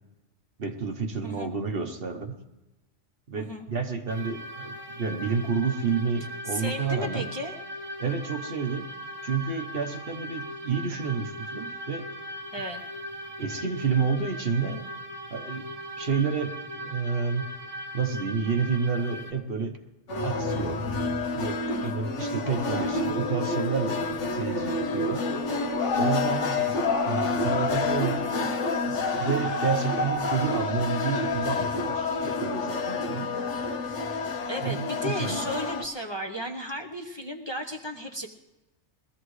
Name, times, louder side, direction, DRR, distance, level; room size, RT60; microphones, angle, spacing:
voice 1, 0.6-2.4 3.3-7.3 8.0-8.9 9.2-12.1 13.4-14.8 15.3-17.5 17.9-19.8 20.2-20.9 21.3-25.3 25.9-28.5 28.8-33.3 34.6-35.4, right 5 dB, 55° right, 5 dB, 1.2 m, -30 dB
voice 2, 3.3-3.7 6.5-7.6 12.5-12.8 21.7-22.0 34.5-38.3, equal, 25° left, 1 dB, 0.8 m, -34 dB
sound 1, 4.1-19.3, equal, 20° right, 1.2 m, -39 dB
sound 2, 20.1-35.8, left 3 dB, 80° left, 1.3 m, -28 dB
21.5 x 14.5 x 3.2 m, 1.1 s
omnidirectional pair, 1.2 m